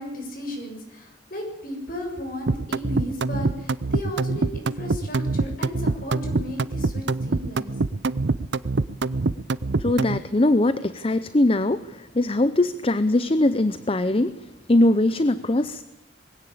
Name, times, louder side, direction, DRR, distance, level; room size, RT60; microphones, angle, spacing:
voice 1, 0.0-7.7, left 1 dB, 50° left, 3 dB, 7.0 m, -35 dB
sound 1, 2.5-10.2, right 3 dB, 70° right, 0.7 m, -24 dB
voice 2, 9.8-14.4 14.7-15.8, left 1 dB, 30° left, 14 dB, 0.7 m, -21 dB
21.5 x 17.0 x 8.6 m, 0.97 s
head